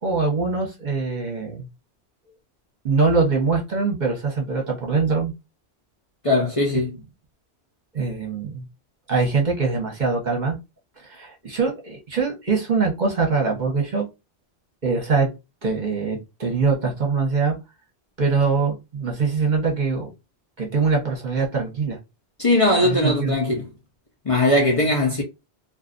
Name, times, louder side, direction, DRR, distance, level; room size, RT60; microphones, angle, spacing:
voice 1, 0.0-1.7 2.8-5.3 7.9-8.7 9.1-10.6 11.0-14.0 14.8-15.3 15.6-17.5 18.2-20.1 20.6-22.0 22.8-23.4, right 4 dB, 45° right, 1.0 m, -23 dB
voice 2, 6.2-6.9 22.4-23.7 24.2-25.2, left 1 dB, 35° left, 0.7 m, -19 dB
2.6 x 2.4 x 2.4 m
omnidirectional pair, 1.1 m